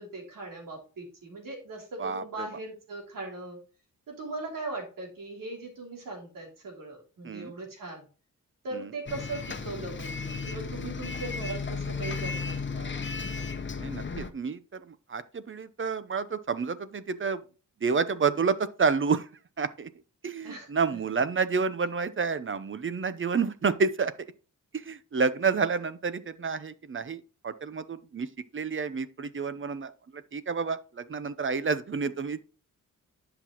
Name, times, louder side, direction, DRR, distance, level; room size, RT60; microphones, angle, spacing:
voice 1, 0.0-3.6 4.1-8.1 8.6-13.0 20.4-21.0, right 2 dB, 85° right, 3.0 m, -39 dB
voice 2, 2.0-2.5 7.2-7.5 8.7-8.9 13.8-17.4 17.8-19.3 19.6-19.9 20.2-24.1 24.7-32.4, right 5 dB, 40° right, 0.7 m, -29 dB
Bus, 9.1-14.3, left 4 dB, 35° left, 0.9 m, -34 dB
10.5 x 5.9 x 3.0 m
cardioid pair, 85°, 32 cm